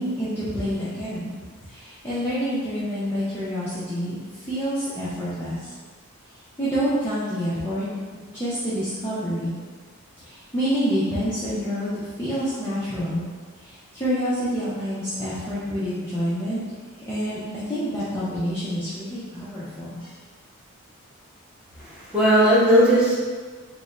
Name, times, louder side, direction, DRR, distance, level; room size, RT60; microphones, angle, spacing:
voice 1, 0.0-1.3 1.7-4.1 4.4-5.7 6.6-7.8 8.3-9.5 10.2-13.2 13.6-16.6 17.1-20.1, equal, 10° left, -13 dB, 0.6 m, -27 dB
voice 2, 21.8-23.1, equal, 5° right, -10 dB, 1.0 m, -17 dB
3.5 x 2.2 x 4.1 m, 1.4 s
head